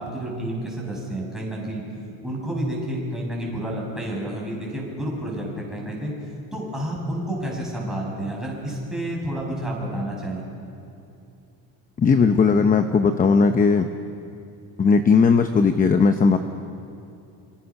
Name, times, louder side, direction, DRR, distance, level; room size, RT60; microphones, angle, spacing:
voice 1, 0.0-1.8 2.2-6.1 6.5-10.4, right 1 dB, ahead, -3 dB, 6.4 m, -30 dB
voice 2, 12.0-13.9 14.8-16.4, left 5 dB, 20° left, 8 dB, 0.8 m, -17 dB
26.5 x 26.0 x 6.0 m, 2.6 s
cardioid pair, 150°, 39 cm